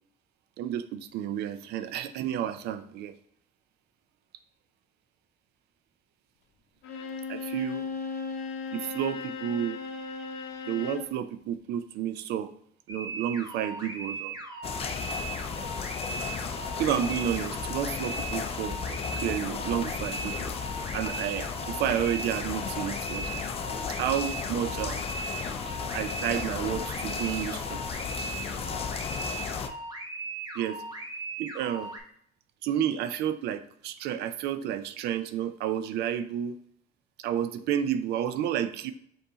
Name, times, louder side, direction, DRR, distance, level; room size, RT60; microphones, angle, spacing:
voice 1, 0.6-3.2 7.3-7.8 8.7-9.8 10.7-12.5 12.9-14.3 16.8-20.6 20.9-23.3 24.0-25.0 25.9-27.8 30.6-30.8 31.4-31.9 32.6-36.5 37.2-38.9, right 10 dB, 80° right, 11 dB, 0.4 m, -31 dB
Bowed string instrument, 6.8-11.2, left 4 dB, 80° left, 0.6 m, -36 dB
sound 1, 12.9-32.0, right 3 dB, 25° right, 1.0 m, -38 dB
sound 2, 14.6-29.7, left 7 dB, 35° left, 0.4 m, -34 dB
5.5 x 2.6 x 3.6 m, 0.65 s
cardioid pair, 110°, 17 cm